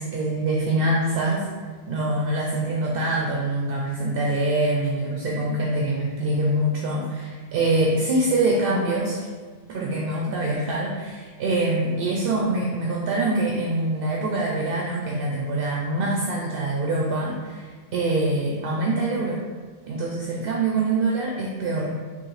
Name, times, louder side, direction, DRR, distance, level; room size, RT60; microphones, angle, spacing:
voice 1, 0.0-1.5 1.9-9.3 9.7-19.4 19.9-21.9, right 2 dB, 65° right, -2 dB, 0.7 m, -24 dB
6.2 x 2.4 x 3.1 m, 1.5 s
omnidirectional pair, 1.1 m